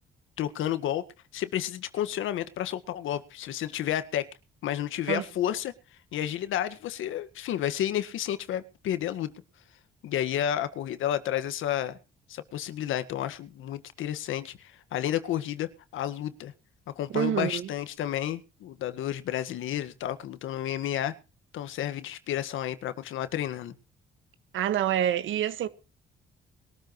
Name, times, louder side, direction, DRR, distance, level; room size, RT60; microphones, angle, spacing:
voice 1, 0.4-1.0 1.3-4.3 4.6-5.7 6.1-9.3 10.0-12.0 12.3-16.5 16.9-21.1 21.5-23.7, left 11 dB, 80° left, 1.7 m, -31 dB
voice 2, 17.1-17.7 24.5-25.7, right 10 dB, 80° right, 1.7 m, -27 dB
21.5 x 13.5 x 3.1 m
cardioid pair, 90°, 20 cm